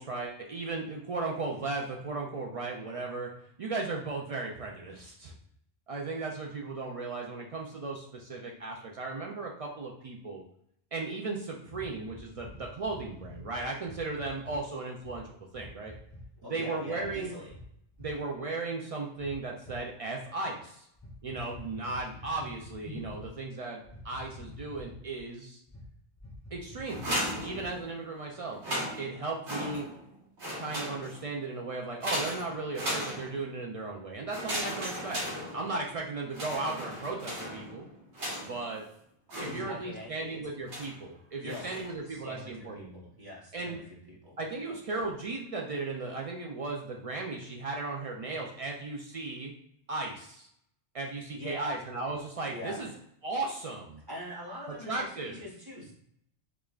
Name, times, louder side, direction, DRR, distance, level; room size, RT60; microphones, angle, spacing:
voice 1, 0.0-3.3 3.6-5.3 5.9-10.4 10.9-15.2 15.5-15.9 16.5-17.3 18.0-20.9 21.2-25.6 26.5-27.0 27.4-29.9 30.6-35.2 35.5-37.9 38.4-38.8 39.4-43.0 43.5-43.8 44.4-49.5 49.9-50.5 50.9-52.9 53.2-54.0 54.9-55.4, right 3 dB, 65° right, 0 dB, 0.3 m, -36 dB
Haptic Feedback, 11.7-14.6 15.0-15.2 15.5-16.2 17.0-17.2 17.5-17.6 17.9-18.1 19.2-19.8 20.9-23.3 23.8-25.2 25.7-25.9 26.2-27.8, left 2 dB, 20° left, 0.5 m, -47 dB
voice 2, 16.4-17.5 39.4-40.4 41.4-44.4 44.6-44.8 51.3-51.8 52.5-52.8 54.1-55.9, left 1 dB, 20° right, -5 dB, 0.9 m, -43 dB
sound 1, 26.8-28.1 28.5-30.1 30.4-31.3 32.0-33.6 34.3-35.9 36.3-38.7 39.3-40.0 40.7-41.0 41.5-42.0, equal, 85° right, 1.5 m, -37 dB
4.9 x 2.4 x 2.3 m, 0.73 s
omnidirectional pair, 1.1 m